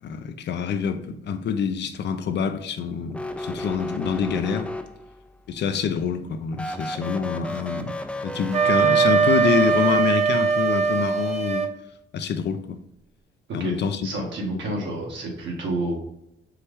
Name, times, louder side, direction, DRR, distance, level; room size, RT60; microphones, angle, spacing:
voice 1, 0.0-4.7 5.5-7.9 8.2-11.7 12.1-12.8 13.5-14.0, left 7 dB, 60° left, 0.5 m, -26 dB
sound 1, 3.1-5.3 6.5-10.0, left 1 dB, 5° left, 0.4 m, -33 dB
Wind instrument woodwind instrument, 8.5-11.7, right 5 dB, 35° right, 0.7 m, -20 dB
voice 2, 14.0-15.9, right 1 dB, 70° right, 1.7 m, -29 dB
4.7 x 3.2 x 3.4 m
cardioid pair, 90°, 20 cm